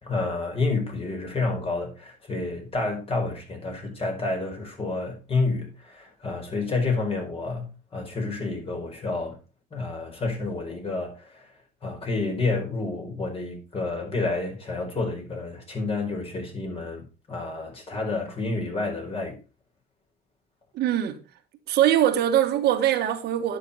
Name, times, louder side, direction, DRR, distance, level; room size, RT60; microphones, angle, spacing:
voice 1, 0.0-9.4 9.7-11.5 11.8-19.4, left 3 dB, 35° left, 4.8 m, -29 dB
voice 2, 20.7-21.2 21.7-23.6, right 11 dB, 75° right, 1.8 m, -22 dB
10.0 x 6.5 x 5.5 m
cardioid pair, 110°, 17 cm